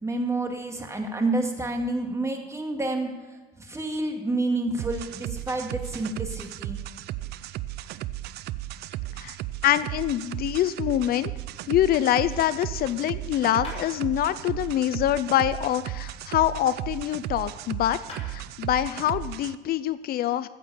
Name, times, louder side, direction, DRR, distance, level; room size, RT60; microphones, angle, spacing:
voice 1, 0.0-3.1 3.6-6.8, right 2 dB, 15° right, 3 dB, 2.2 m, -29 dB
sound 1, 4.8-19.5, right 15 dB, 75° right, 0.5 m, -35 dB
voice 2, 9.6-11.3 11.7-18.0 18.3-20.5, left 12 dB, 65° left, 15 dB, 0.5 m, -25 dB
sound 2, 13.6-13.9 15.8-17.1 17.7-17.8 18.1-18.3, left 2 dB, 40° left, 5.7 m, -44 dB
14.5 x 8.3 x 6.9 m, 1.3 s
cardioid pair, 110°, 17 cm